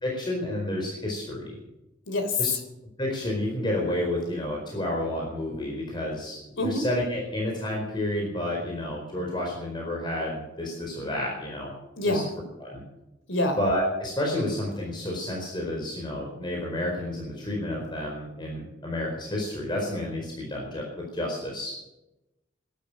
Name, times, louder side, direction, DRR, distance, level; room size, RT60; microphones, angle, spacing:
voice 1, 0.0-1.6 2.4-2.5 3.0-11.7 12.0-12.2 12.6-12.8 13.6-21.7, left 1 dB, 25° left, -1 dB, 4.5 m, -30 dB
voice 2, 2.1-2.6 6.6-6.8 11.9-12.3 13.3-13.6, left 2 dB, 85° left, 7 dB, 3.4 m, -26 dB
18.0 x 12.5 x 6.3 m, 0.93 s
head